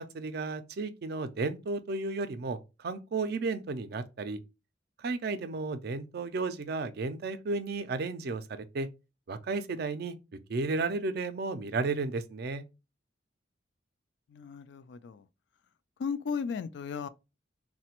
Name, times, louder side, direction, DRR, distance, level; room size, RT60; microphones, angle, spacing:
voice 1, 0.0-4.4 5.0-8.9 9.3-10.2 10.5-12.6, right 3 dB, 55° right, 0.4 m, -33 dB
voice 2, 14.3-15.3 16.0-17.1, left 6 dB, 70° left, 0.3 m, -35 dB
3.2 x 2.2 x 2.8 m
head